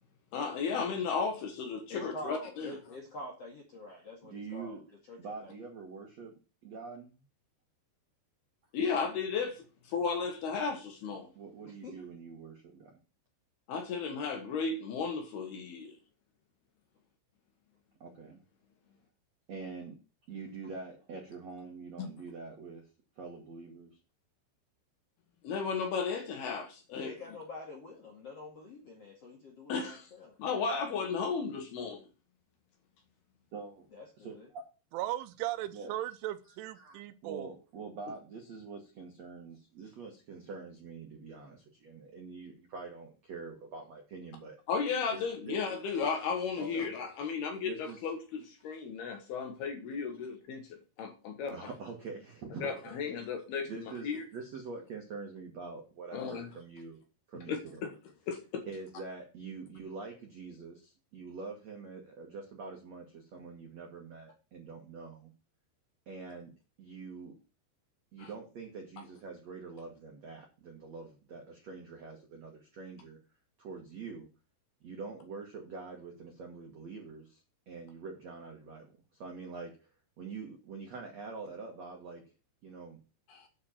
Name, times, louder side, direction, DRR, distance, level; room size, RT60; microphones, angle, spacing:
voice 1, 0.3-2.7 8.7-9.7 9.9-11.3 13.7-16.0 22.0-22.1 25.4-27.1 29.7-30.1 30.4-32.0 44.7-51.7 52.6-54.2 56.1-56.5 57.5-57.6 58.3-58.6 68.2-68.3 83.3-83.4, left 5 dB, 65° left, 3.0 m, -34 dB
voice 2, 1.9-4.8 5.1-5.5 11.6-12.0 26.9-30.4 33.9-34.5, left 1 dB, 50° left, 2.0 m, -46 dB
voice 3, 3.9-4.8 5.2-6.3 6.6-7.2 11.3-12.9 18.0-18.4 19.5-20.0 20.3-22.9 23.2-24.0 33.5-33.9 34.2-34.6 35.7-35.9 36.8-44.6 45.1-45.6 46.6-46.8 47.6-48.0 51.5-53.0 53.7-57.0 57.3-57.9 58.7-65.3 66.1-66.5 66.8-67.4 68.1-73.2 73.6-74.3 74.8-79.7 80.2-82.2 82.6-83.0, right 4 dB, 65° right, 1.6 m, -45 dB
voice 4, 34.9-37.5, right 15 dB, 80° right, 3.1 m, -37 dB
9.6 x 5.0 x 7.3 m
omnidirectional pair, 5.6 m